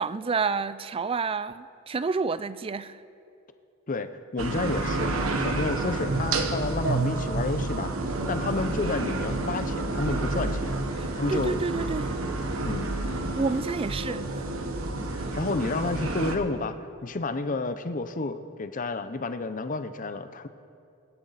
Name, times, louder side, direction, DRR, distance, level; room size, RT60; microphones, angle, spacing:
voice 1, 0.0-3.0 11.0-12.1 13.3-14.4, right 4 dB, 25° right, 15 dB, 0.4 m, -29 dB
voice 2, 3.9-7.9 8.3-11.6 12.6-13.1 15.1-16.8 17.0-20.5, left 3 dB, 40° left, 10 dB, 0.6 m, -31 dB
sound 1, 4.4-16.4, right 2 dB, 80° right, 1.2 m, -29 dB
23.0 x 11.5 x 4.1 m, 2.6 s
head